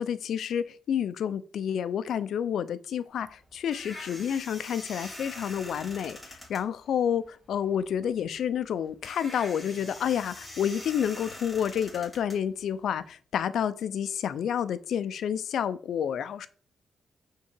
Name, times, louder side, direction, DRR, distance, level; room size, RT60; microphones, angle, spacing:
voice 1, 0.0-16.5, left 8 dB, 80° left, 0.6 m, -29 dB
sound 1, 3.1-13.1, left 1 dB, 5° left, 2.5 m, -44 dB
8.7 x 3.7 x 4.6 m
wide cardioid pair, 145°, 0 cm